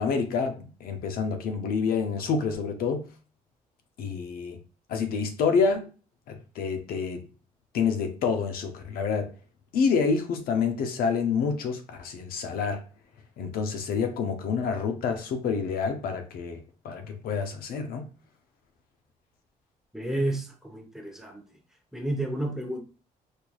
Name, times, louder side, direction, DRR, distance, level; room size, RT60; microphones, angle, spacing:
voice 1, 0.0-3.1 4.0-4.6 4.9-5.9 6.3-7.3 7.7-9.3 9.7-12.8 13.4-18.1, left 5 dB, 80° left, 0.7 m, -28 dB
voice 2, 19.9-21.4 21.9-22.8, right 1 dB, 5° right, 0.9 m, -31 dB
4.4 x 3.2 x 2.3 m
cardioid pair, 105°, 15 cm